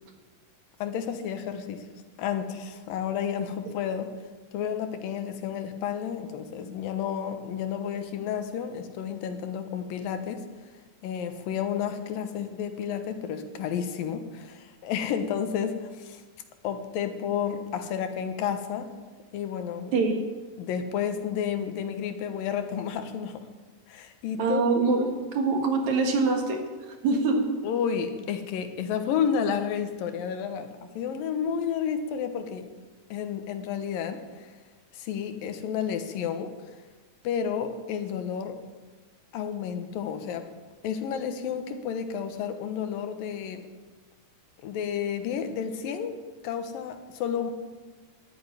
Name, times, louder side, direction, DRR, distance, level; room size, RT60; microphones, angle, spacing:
voice 1, 0.8-1.9 2.2-4.1 4.5-10.5 11.0-16.2 16.6-18.9 19.3-19.9 20.6-23.4 23.9-24.6 27.6-32.6 33.1-34.5 34.9-36.5 37.2-38.6 39.3-40.5 40.8-43.7 44.6-47.5, left 8 dB, 85° left, 8 dB, 2.9 m, -31 dB
voice 2, 24.4-26.6 27.0-27.5, right 3 dB, 60° right, 3 dB, 2.9 m, -24 dB
12.0 x 9.5 x 10.0 m, 1.4 s
omnidirectional pair, 3.9 m